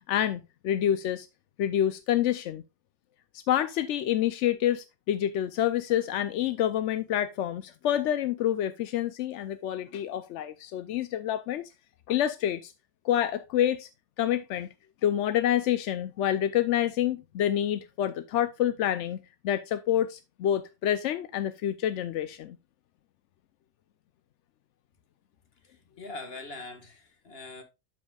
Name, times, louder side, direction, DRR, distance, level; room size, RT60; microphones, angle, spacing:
voice 1, 0.1-1.3 1.6-2.6 3.3-11.7 12.1-12.7 13.0-13.9 14.2-14.7 15.0-19.2 19.4-22.6, left 11 dB, 65° left, 0.7 m, -27 dB
voice 2, 25.6-27.6, left 3 dB, 40° left, 1.8 m, -42 dB
12.5 x 5.3 x 2.3 m
omnidirectional pair, 1.6 m